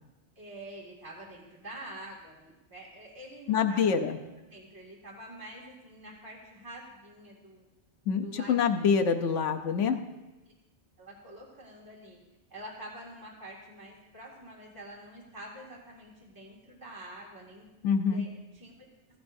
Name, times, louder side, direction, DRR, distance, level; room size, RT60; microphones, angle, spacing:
voice 1, 0.4-3.9 4.4-7.6 8.2-8.5 10.2-10.3 11.0-12.2 12.5-17.7 18.1-18.3 18.5-18.7, right 1 dB, 15° right, -5 dB, 2.2 m, -46 dB
voice 2, 3.5-4.2 8.1-10.0 17.8-18.2, left 6 dB, 90° left, 6 dB, 1.1 m, -26 dB
15.5 x 15.0 x 2.7 m, 1.1 s
omnidirectional pair, 1.2 m